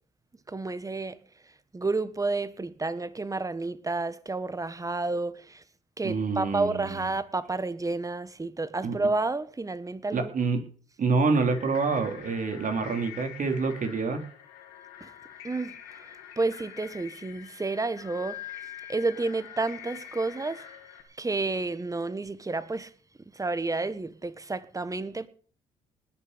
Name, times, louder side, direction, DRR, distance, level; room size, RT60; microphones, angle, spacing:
voice 1, 0.5-1.2 1.7-5.6 6.0-10.3 15.0-15.1 15.4-15.8 16.4-18.5 18.9-20.7 21.2-22.9 23.3-25.3, right 3 dB, 20° right, 1.5 m, -30 dB
voice 2, 6.0-7.0 8.8-9.0 10.1-10.6 11.0-14.2, right 4 dB, 50° right, 3.7 m, -27 dB
sound 1, 11.4-21.0, left 10 dB, 90° left, 2.7 m, -45 dB
20.0 x 7.0 x 6.9 m
supercardioid pair, 60°, 17 cm